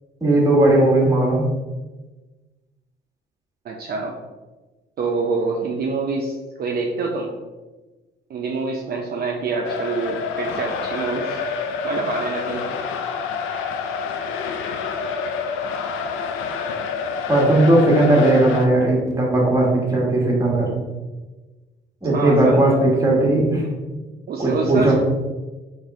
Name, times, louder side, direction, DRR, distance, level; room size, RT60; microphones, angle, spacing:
voice 1, 0.2-1.5 17.3-20.7 22.0-23.6 24.4-24.9, right 1 dB, 15° right, -3 dB, 1.3 m, -17 dB
voice 2, 3.6-4.2 5.0-7.3 8.3-11.4 11.8-12.7 22.1-22.6 24.3-24.9, right 4 dB, 50° right, 0 dB, 0.5 m, -26 dB
sound 1, 9.6-18.7, left 5 dB, 90° left, 0.4 m, -28 dB
4.0 x 3.0 x 3.6 m, 1.2 s
cardioid pair, 90°, 20 cm